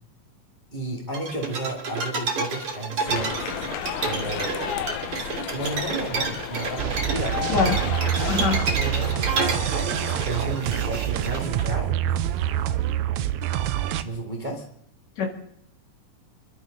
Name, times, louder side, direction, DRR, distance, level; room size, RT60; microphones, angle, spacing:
voice 1, 0.7-3.5 4.0-4.9 5.5-7.5 8.2-8.5 8.7-12.1 14.0-14.6, right 1 dB, 20° right, 0 dB, 1.7 m, -32 dB
sound 1, 1.1-11.6, right 4 dB, 50° right, 3.0 m, -30 dB
sound 2, 3.1-10.5, left 10 dB, 85° left, 2.3 m, -33 dB
sound 3, 6.8-14.0, right 12 dB, 75° right, 2.0 m, -26 dB
voice 2, 7.5-7.7 8.3-8.6 15.2-15.3, left 5 dB, 65° left, 3 dB, 3.2 m, -22 dB
27.5 x 12.0 x 3.8 m, 0.69 s
omnidirectional pair, 3.5 m